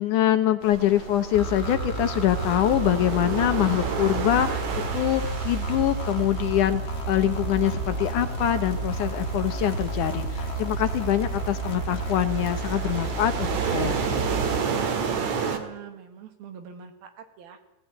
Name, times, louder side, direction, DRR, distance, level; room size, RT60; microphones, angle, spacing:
voice 1, 0.0-4.6 4.9-6.8 7.1-14.0, left 12 dB, 70° left, 9 dB, 2.1 m, -24 dB
sound 1, 0.6-15.6, right 6 dB, 55° right, 2.7 m, -32 dB
sound 2, 1.3-14.6, right 3 dB, 50° left, 0.7 m, -31 dB
voice 2, 14.5-17.6, right 8 dB, 80° right, 8 dB, 3.7 m, -44 dB
17.0 x 17.0 x 9.4 m, 0.98 s
omnidirectional pair, 4.2 m